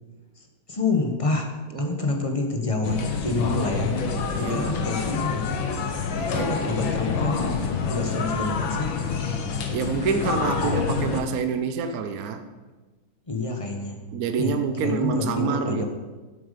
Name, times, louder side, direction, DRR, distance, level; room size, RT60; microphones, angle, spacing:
voice 1, 0.4-1.5 1.8-4.0 4.4-5.5 6.3-7.5 7.8-8.9 11.0-11.1 13.3-14.0 14.4-15.9, left 3 dB, 20° left, 2 dB, 1.0 m, -28 dB
voice 2, 1.7-2.2 4.3-4.7 6.2-6.5 9.7-12.4 14.1-15.8, right 6 dB, 55° right, 7 dB, 1.1 m, -27 dB
sound 1, 2.8-11.2, left 5 dB, 70° left, 1.8 m, -27 dB
12.5 x 7.9 x 5.2 m, 1.2 s
omnidirectional pair, 2.3 m